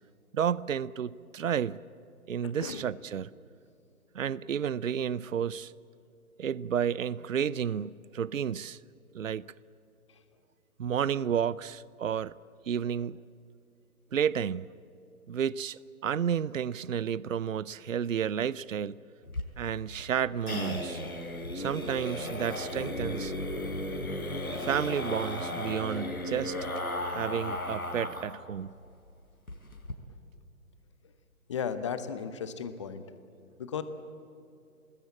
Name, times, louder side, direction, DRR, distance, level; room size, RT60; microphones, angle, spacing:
voice 1, 0.3-1.8 2.3-3.3 4.1-5.7 6.4-8.8 9.1-9.5 10.8-12.3 12.7-13.2 14.1-14.7 15.3-19.0 19.6-21.0 21.5-23.3 24.6-26.6 27.0-28.7, right 8 dB, 65° right, 0.6 m, -31 dB
voice 2, 2.4-2.9 31.5-33.0 33.6-33.8, left 7 dB, 20° left, 0.8 m, -35 dB
sound 1, 19.3-28.4 28.7-28.8 29.1-29.2 29.5-29.9, left 1 dB, 80° left, 3.9 m, -35 dB
26.0 x 20.0 x 8.5 m
figure-of-eight pair, 140°, 43 cm